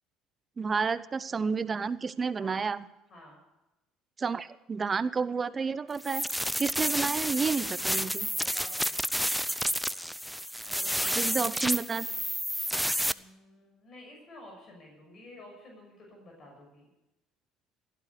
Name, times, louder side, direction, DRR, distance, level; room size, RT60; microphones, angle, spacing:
voice 1, 0.6-2.8 4.2-6.2 6.6-8.3 11.2-12.1, right 5 dB, 30° right, 16 dB, 0.8 m, -30 dB
sound 1, 6.0-13.1, equal, ahead, 0.6 m, -30 dB
voice 2, 8.2-8.8 10.6-11.6 13.1-16.9, left 1 dB, 45° left, 1 dB, 6.2 m, -51 dB
17.0 x 12.0 x 6.8 m, 0.97 s
hypercardioid pair, 65°, 0 cm